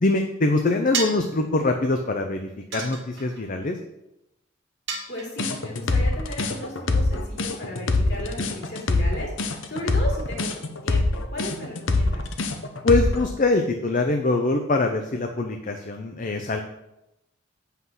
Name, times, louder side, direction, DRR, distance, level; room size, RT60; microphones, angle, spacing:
voice 1, 0.0-3.8 12.8-16.6, left 2 dB, 40° left, 5 dB, 0.6 m, -23 dB
sound 1, 0.9-1.3 2.7-3.4 4.9-5.6, right 5 dB, 60° right, 1.5 m, -31 dB
voice 2, 5.1-9.3 9.6-10.5 10.8-12.2, equal, 60° left, -2 dB, 3.0 m, -35 dB
sound 2, 5.4-13.3, left 3 dB, 75° left, 0.9 m, -23 dB
7.8 x 5.8 x 5.7 m, 0.89 s
head